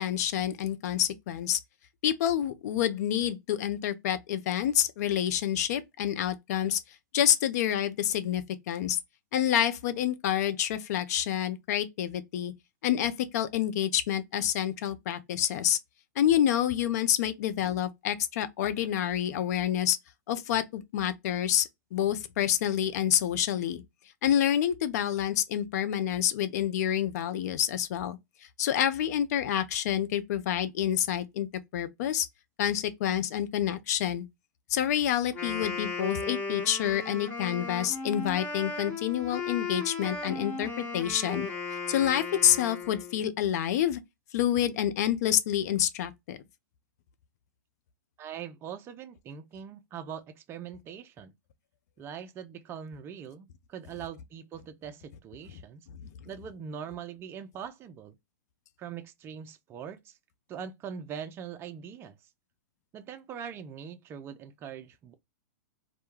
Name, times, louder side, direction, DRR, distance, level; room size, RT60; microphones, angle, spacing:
voice 1, 0.0-1.6 2.0-6.8 7.1-9.0 9.3-12.5 12.8-15.8 16.2-20.0 20.3-23.8 24.2-28.2 28.6-31.5 31.7-32.3 32.6-34.3 34.7-41.5 41.9-44.0 44.3-46.4, left 10 dB, 60° left, 0.4 m, -28 dB
Wind instrument woodwind instrument, 35.2-43.3, left 4 dB, 20° left, 1.2 m, -36 dB
voice 2, 48.2-51.3 52.0-55.9 56.3-58.2 58.8-60.2 60.5-62.2 62.9-65.1, right 8 dB, 25° right, 0.4 m, -42 dB
2.2 x 2.1 x 2.9 m
hypercardioid pair, 120°, 10 cm